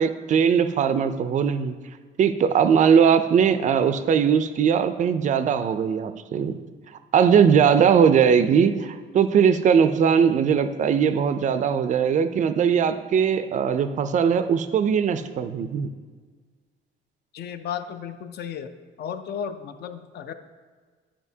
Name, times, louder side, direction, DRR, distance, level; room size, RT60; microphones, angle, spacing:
voice 1, 0.0-1.7 2.2-6.6 7.1-15.9, right 7 dB, 35° right, 10 dB, 0.4 m, -20 dB
voice 2, 17.3-18.7 19.0-20.3, left 8 dB, 50° left, 10 dB, 0.4 m, -34 dB
11.0 x 5.1 x 2.7 m, 1.5 s
cardioid pair, 170°, 21 cm